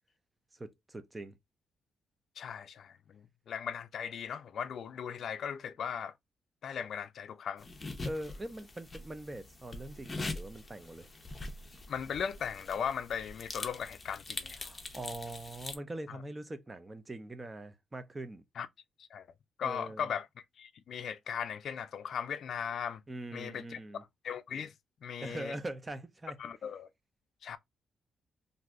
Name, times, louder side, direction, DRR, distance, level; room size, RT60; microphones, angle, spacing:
voice 1, 0.5-1.4 8.0-11.1 14.6-18.4 19.6-20.1 23.1-24.0 25.2-26.4, right 1 dB, 20° right, 0.6 m, -42 dB
voice 2, 2.4-6.1 6.6-7.7 11.9-14.6 16.1-16.2 18.6-18.7 19.0-19.3 19.6-20.3 20.6-23.0 23.3-23.8 24.2-24.7 25.0-25.6 26.4-26.9 27.4-27.6, left 7 dB, 70° left, 0.4 m, -38 dB
sound 1, 7.6-15.8, left 2 dB, 25° left, 0.7 m, -43 dB
3.2 x 2.6 x 2.4 m
cardioid pair, 95°, 0 cm